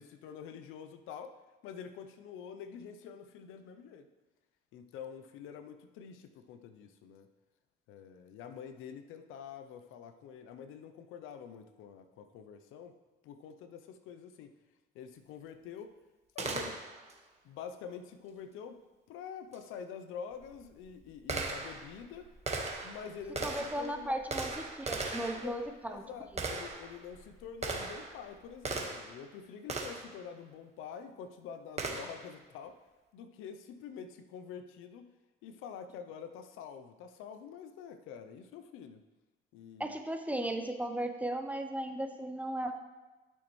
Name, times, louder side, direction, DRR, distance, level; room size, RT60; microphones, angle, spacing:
voice 1, 0.0-1.4 1.6-4.1 4.7-7.3 7.9-13.0 13.2-14.5 14.9-15.9 16.3-16.8 17.4-18.8 19.1-22.3 22.8-24.2 25.2-25.6 25.9-32.8 33.1-35.1 35.4-39.0 39.5-40.0, left 7 dB, 85° left, 9 dB, 0.7 m, -47 dB
Gunshot gunfire, 16.4-17.2 19.5-19.6 20.3-29.2 29.7-30.2 31.8-32.3, right 3 dB, 30° right, 1.5 m, -39 dB
voice 2, 23.4-24.5 24.8-26.0 39.8-42.7, right 1 dB, 5° right, 5 dB, 0.9 m, -36 dB
12.0 x 6.2 x 3.2 m, 1.2 s
cardioid pair, 85°, 20 cm